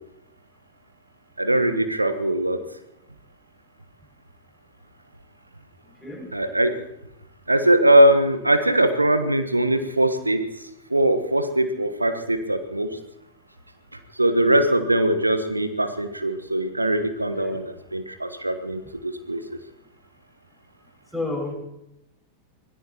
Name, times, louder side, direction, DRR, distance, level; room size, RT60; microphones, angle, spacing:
voice 1, 1.4-2.6 6.3-6.7 7.5-10.4 10.9-13.0 14.2-19.4, right 1 dB, 85° right, 9 dB, 1.2 m, -21 dB
voice 2, 21.1-21.5, left 2 dB, ahead, 0 dB, 6.3 m, -30 dB
25.5 x 17.5 x 3.0 m, 0.82 s
figure-of-eight pair, 90°, 0 cm